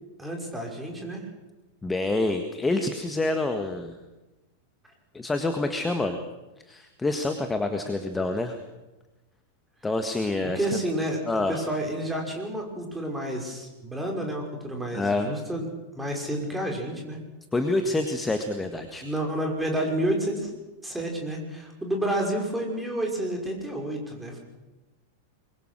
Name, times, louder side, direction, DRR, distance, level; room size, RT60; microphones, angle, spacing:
voice 1, 0.2-1.2 10.5-11.2 11.5-15.7 16.0-17.2 19.0-20.5 20.8-24.4, right 1 dB, 5° right, 1 dB, 5.7 m, -30 dB
voice 2, 1.8-4.0 5.1-6.2 6.7-8.6 9.8-10.7 11.3-11.6 14.9-15.3 17.5-19.0, left 2 dB, 10° left, 7 dB, 1.7 m, -27 dB
24.5 x 22.5 x 6.5 m, 1.1 s
figure-of-eight pair, 90°, 0 cm